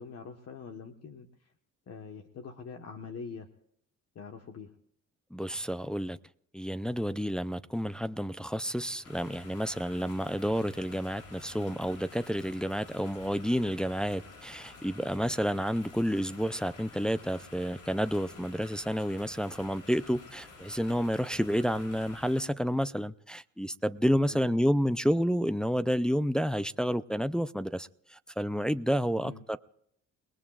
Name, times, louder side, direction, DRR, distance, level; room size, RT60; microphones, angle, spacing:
voice 1, 0.0-1.5 1.9-3.5 4.1-4.7 24.3-24.6 29.2-29.4, left 5 dB, 55° left, 1.4 m, -44 dB
voice 2, 5.3-6.2 6.5-29.6, equal, 5° left, 0.5 m, -30 dB
sound 1, 9.0-22.4, left 4 dB, 85° left, 3.6 m, -50 dB
29.5 x 19.0 x 2.4 m
cardioid pair, 90°, 30 cm